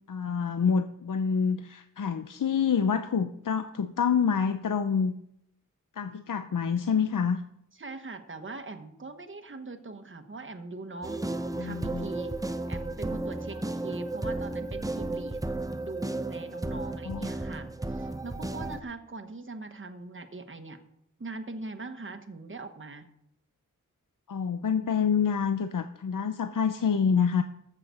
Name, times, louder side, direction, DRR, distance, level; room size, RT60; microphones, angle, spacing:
voice 1, 0.1-5.1 6.0-7.4 11.6-12.1 17.1-17.3 24.3-27.4, left 6 dB, 80° left, 9 dB, 0.6 m, -27 dB
voice 2, 7.7-11.3 11.6-12.4 12.7-15.4 15.8-20.8 21.2-23.1, right 3 dB, 40° right, 7 dB, 1.2 m, -41 dB
sound 1, 11.0-18.8, right 2 dB, 10° right, 0.7 m, -33 dB
14.5 x 5.9 x 6.8 m, 0.75 s
wide cardioid pair, 90°, 31 cm